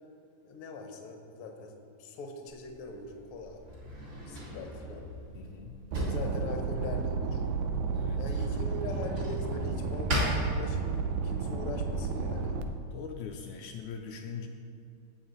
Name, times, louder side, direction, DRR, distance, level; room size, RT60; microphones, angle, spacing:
voice 1, 0.4-3.6 4.2-5.1 6.0-7.4 8.2-12.6, left 3 dB, 60° left, 3 dB, 1.6 m, -41 dB
Drawer open or close, 2.5-11.2, equal, 35° right, 3.6 m, -38 dB
voice 2, 5.3-5.9 7.8-8.2 12.9-14.5, left 6 dB, 80° left, 2 dB, 1.9 m, -42 dB
sound 1, 5.9-12.6, right 4 dB, 85° right, 2.3 m, -32 dB
17.0 x 6.6 x 4.1 m, 2.6 s
omnidirectional pair, 3.7 m